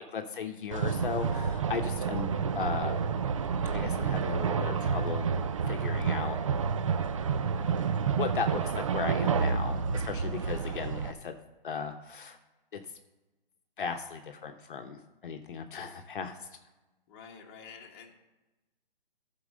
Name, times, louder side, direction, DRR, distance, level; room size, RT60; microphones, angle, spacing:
voice 1, 0.1-3.0 3.7-5.3 5.7-6.4 8.2-11.3 11.6-12.4 12.7-12.8 13.8-16.5, left 6 dB, 60° left, 5 dB, 1.0 m, -36 dB
sound 1, 0.7-11.1, right 6 dB, 35° right, 0.4 m, -29 dB
voice 2, 17.1-18.1, left 6 dB, 25° left, 0 dB, 1.4 m, -50 dB
11.0 x 4.7 x 6.4 m, 1.1 s
hypercardioid pair, 150°, 29 cm